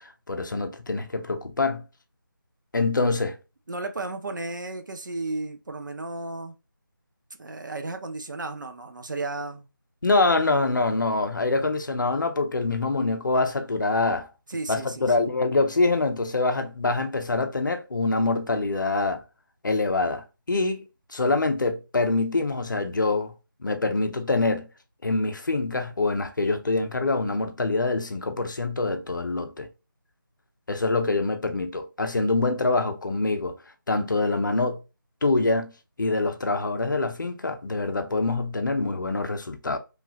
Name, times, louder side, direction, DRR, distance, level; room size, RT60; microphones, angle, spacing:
voice 1, 0.0-1.8 2.7-3.4 10.0-14.3 14.7-19.2 19.6-20.9 21.1-23.3 23.6-24.7 25.0-29.7 30.7-33.6 33.9-34.8 35.2-35.7 36.0-39.8, left 3 dB, 60° left, 0.6 m, -25 dB
voice 2, 3.7-6.6 7.4-9.7 14.5-15.1, right 2 dB, 60° right, 0.6 m, -34 dB
3.2 x 2.3 x 2.8 m
figure-of-eight pair, 165°, 12 cm